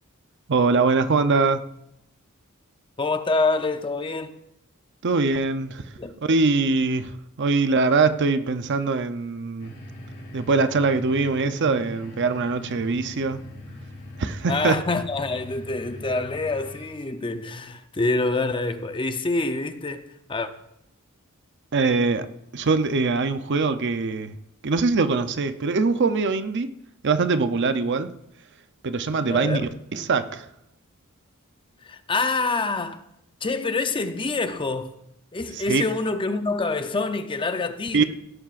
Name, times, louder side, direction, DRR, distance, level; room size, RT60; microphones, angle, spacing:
voice 1, 0.5-1.6 5.0-5.8 6.3-9.7 10.3-13.4 14.2-14.8 21.7-24.3 24.6-26.7 27.0-28.1 28.8-29.6 29.9-30.5 35.7-35.8 37.9-38.0, right 4 dB, 55° right, 0.6 m, -22 dB
voice 2, 3.0-4.4 6.0-6.2 14.5-20.5 29.3-29.7 31.8-33.1 33.4-35.0 35.3-38.0, left 3 dB, 25° left, 0.6 m, -26 dB
sound 1, 9.6-17.0, left 1 dB, 50° left, 3.9 m, -41 dB
17.0 x 12.0 x 2.5 m
head